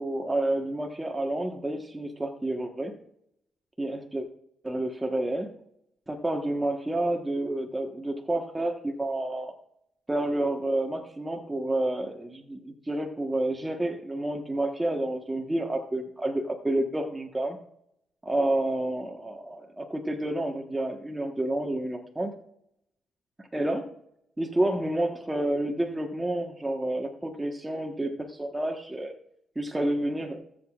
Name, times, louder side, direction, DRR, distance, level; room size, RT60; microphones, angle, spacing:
voice 1, 0.0-2.9 3.8-4.3 4.6-5.5 6.1-9.5 10.1-17.6 18.2-22.3 23.5-23.9 24.4-29.1 29.5-30.4, right 1 dB, 10° right, 2 dB, 1.3 m, -29 dB
20.5 x 8.0 x 2.5 m, 0.75 s
cardioid pair, 90°, 0 cm